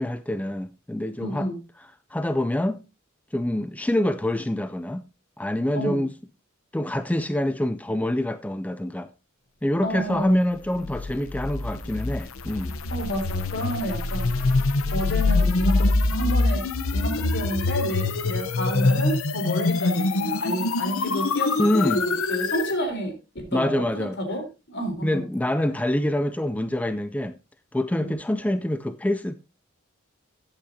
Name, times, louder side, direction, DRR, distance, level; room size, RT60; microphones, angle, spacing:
voice 1, 0.0-1.5 1.8-2.8 3.3-5.0 5.4-6.1 6.7-9.1 9.6-12.8 21.6-22.1 23.5-24.2 25.0-27.3 27.7-29.3, left 1 dB, 5° left, 0.4 m, -26 dB
voice 2, 1.2-1.6 5.7-6.0 9.8-10.4 12.9-14.6 14.9-16.6 16.9-25.2 28.0-28.1, equal, 55° left, 4.0 m, -30 dB
sound 1, 10.6-22.8, left 3 dB, 80° left, 0.9 m, -24 dB
14.5 x 9.0 x 2.8 m
head